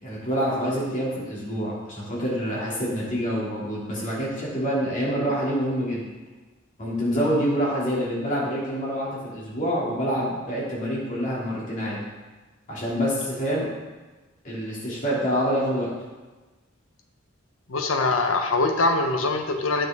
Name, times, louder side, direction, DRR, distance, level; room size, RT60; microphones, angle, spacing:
voice 1, 0.0-6.0 6.8-12.0 12.7-13.7 14.4-15.9, equal, 40° left, -6 dB, 2.5 m, -26 dB
voice 2, 17.7-19.9, left 3 dB, 85° left, 4 dB, 0.9 m, -23 dB
8.3 x 6.3 x 3.6 m, 1.2 s
head